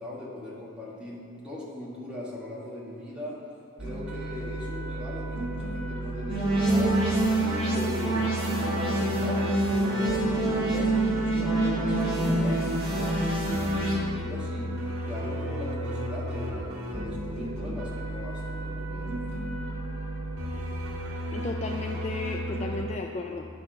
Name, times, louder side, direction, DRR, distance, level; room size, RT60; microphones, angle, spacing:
voice 1, 0.0-3.4 3.8-19.1, left 1 dB, 5° right, -6 dB, 1.5 m, -39 dB
sound 1, 3.8-22.8, right 1 dB, 90° right, 1.3 m, -34 dB
sound 2, 6.3-13.9, right 1 dB, 25° right, 1.9 m, -26 dB
voice 2, 21.3-23.4, left 3 dB, 30° left, 3 dB, 0.3 m, -34 dB
9.0 x 4.3 x 6.3 m, 2.4 s
head